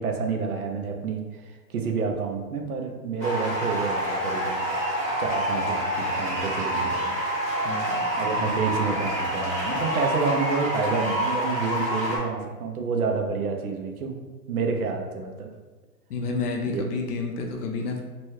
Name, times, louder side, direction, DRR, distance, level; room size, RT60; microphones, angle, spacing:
voice 1, 0.0-4.6 5.2-7.2 8.2-14.2 14.5-15.5 16.7-16.8, right 5 dB, 65° right, 3 dB, 0.6 m, -29 dB
sound 1, 3.2-12.2, equal, 5° left, 0.6 m, -27 dB
voice 2, 7.6-8.6 16.1-18.0, left 4 dB, 70° left, 1 dB, 0.6 m, -30 dB
2.9 x 2.3 x 3.1 m, 1.3 s
hypercardioid pair, 170°, 48 cm